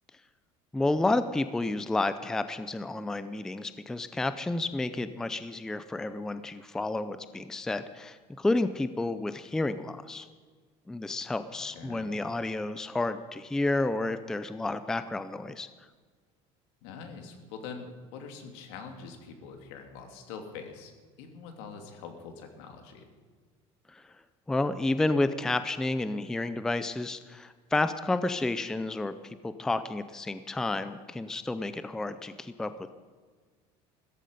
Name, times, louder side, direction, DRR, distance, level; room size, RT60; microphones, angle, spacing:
voice 1, 0.7-10.3 10.9-15.7 23.9-24.0 24.5-32.9, left 2 dB, 5° left, 12 dB, 0.4 m, -30 dB
voice 2, 11.7-12.1 16.8-20.9 21.2-23.0, left 5 dB, 80° left, 4 dB, 2.8 m, -44 dB
16.0 x 14.0 x 5.3 m, 1.5 s
cardioid pair, 175°, 14 cm